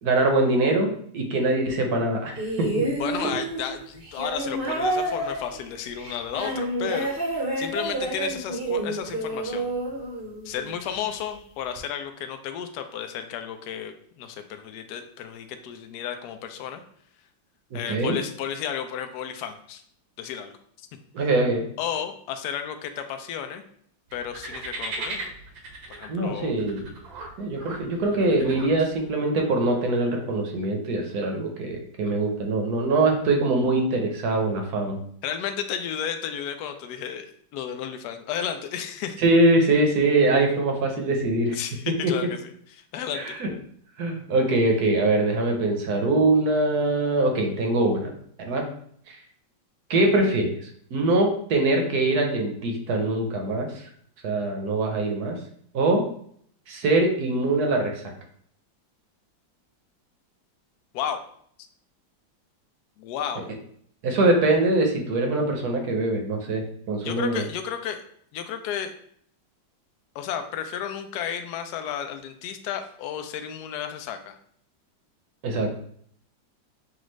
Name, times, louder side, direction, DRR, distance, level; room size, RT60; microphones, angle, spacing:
voice 1, 0.0-2.9 17.7-18.2 21.1-21.6 26.1-26.9 27.4-35.0 39.2-41.6 42.0-42.1 43.1-43.5 44.0-48.1 48.4-48.6 49.1-49.2 49.9-50.5 50.9-53.7 54.2-55.4 55.7-56.0 56.7-57.9 64.0-67.4 75.4-75.8, right 2 dB, 60° right, 2 dB, 1.2 m, -23 dB
sound 1, 2.4-10.7 11.8-11.9, right 2 dB, 45° right, 0.8 m, -29 dB
voice 2, 3.0-9.7 10.4-16.8 17.7-19.8 20.2-20.5 21.8-23.6 24.1-25.2 25.9-26.5 35.2-39.2 41.5-43.4 60.9-61.2 63.0-63.5 67.0-68.0 68.3-68.9 70.1-74.4, left 8 dB, 75° left, 7 dB, 1.0 m, -33 dB
sound 2, 24.1-29.1, right 2 dB, 80° right, 1.6 m, -38 dB
6.1 x 2.4 x 3.1 m, 0.63 s
omnidirectional pair, 2.0 m